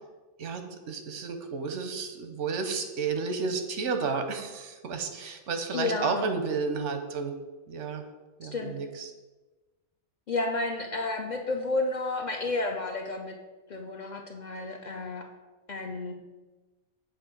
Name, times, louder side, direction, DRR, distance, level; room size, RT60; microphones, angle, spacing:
voice 1, 0.4-7.3 7.7-8.0 8.4-9.1, right 5 dB, 90° right, 6 dB, 1.1 m, -32 dB
voice 2, 5.7-6.3 8.4-8.7 10.3-13.4 13.7-15.3 15.7-16.2, left 3 dB, 55° left, 2 dB, 0.5 m, -31 dB
7.2 x 2.6 x 5.8 m, 1.2 s
omnidirectional pair, 1.2 m